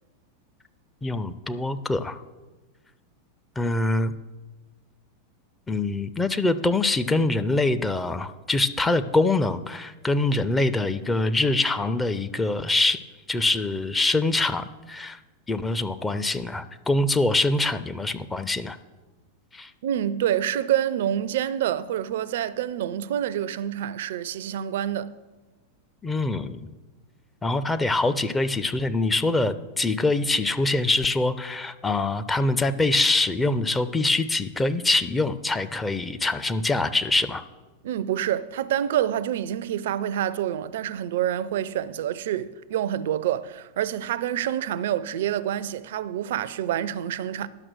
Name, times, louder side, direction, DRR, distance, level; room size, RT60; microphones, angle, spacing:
voice 1, 1.0-2.2 3.6-4.1 5.7-13.0 13.3-15.2 15.5-18.8 19.5-19.7 26.0-26.7 27.4-37.4, left 2 dB, 10° left, 0.4 m, -24 dB
voice 2, 19.8-25.2 37.8-47.5, right 11 dB, 55° right, 0.4 m, -27 dB
10.5 x 6.0 x 6.2 m
figure-of-eight pair, 90°, 0 cm